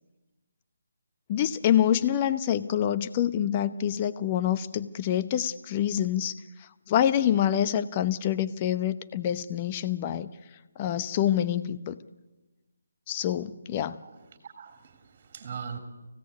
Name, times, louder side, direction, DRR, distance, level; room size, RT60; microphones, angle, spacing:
voice 1, 1.3-6.3 6.9-10.3 10.8-12.0 13.1-14.0, left 10 dB, 25° left, 13 dB, 0.9 m, -26 dB
voice 2, 14.4-15.8, right 6 dB, 35° right, 6 dB, 3.3 m, -40 dB
24.5 x 17.0 x 9.6 m, 1.1 s
figure-of-eight pair, 160°, 0 cm